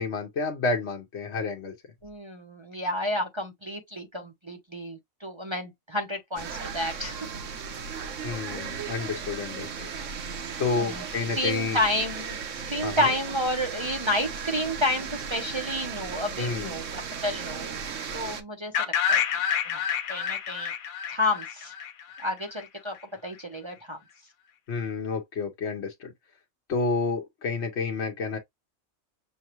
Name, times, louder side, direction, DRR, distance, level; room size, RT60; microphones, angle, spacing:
voice 1, 0.0-1.7 8.2-9.9 10.6-11.8 12.8-13.1 16.4-16.7 24.7-26.1 26.7-28.4, left 4 dB, 55° left, 1.2 m, -30 dB
voice 2, 2.0-7.3 10.7-11.0 11.4-12.4 12.7-17.6 18.0-19.2 19.6-19.8 20.1-20.7 21.1-21.7 22.2-23.0 23.2-24.0, left 1 dB, 25° right, 0.6 m, -30 dB
sound 1, 6.4-18.4, right 6 dB, 65° right, 1.1 m, -36 dB
sound 2, 18.7-22.6, left 8 dB, 85° left, 1.2 m, -28 dB
6.3 x 2.2 x 3.0 m
omnidirectional pair, 1.5 m